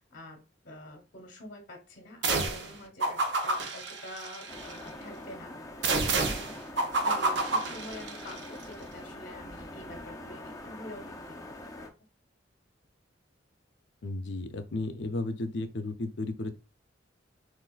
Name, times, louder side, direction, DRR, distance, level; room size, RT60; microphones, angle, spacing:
voice 1, 0.0-11.4 11.8-11.9, left 1 dB, 45° left, 2 dB, 1.0 m, -47 dB
sound 1, 2.2-2.7 3.0-4.8 5.8-8.4, right 3 dB, 70° right, 0.7 m, -29 dB
sound 2, 4.5-11.9, left 1 dB, 20° left, 0.6 m, -44 dB
voice 2, 14.0-16.6, left 2 dB, 65° left, 9 dB, 0.5 m, -34 dB
6.0 x 2.5 x 2.4 m, 0.31 s
head